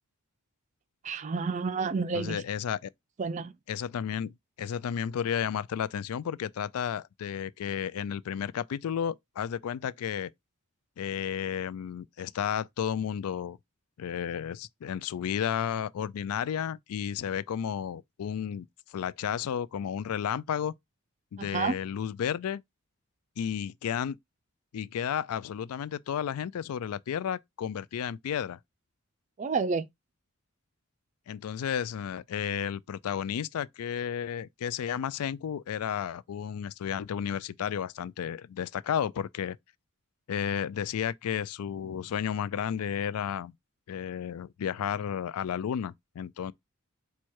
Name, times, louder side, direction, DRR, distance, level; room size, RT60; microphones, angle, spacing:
voice 1, 1.0-2.4 3.2-3.5 21.4-21.8 29.4-29.9, right 4 dB, 35° right, 0.3 m, -30 dB
voice 2, 2.1-2.9 3.7-10.3 11.0-13.6 14.0-20.7 21.3-22.6 23.4-24.2 24.7-28.6 31.3-39.6 40.3-43.5 43.9-46.5, left 8 dB, 80° left, 0.3 m, -32 dB
4.6 x 2.2 x 4.4 m
head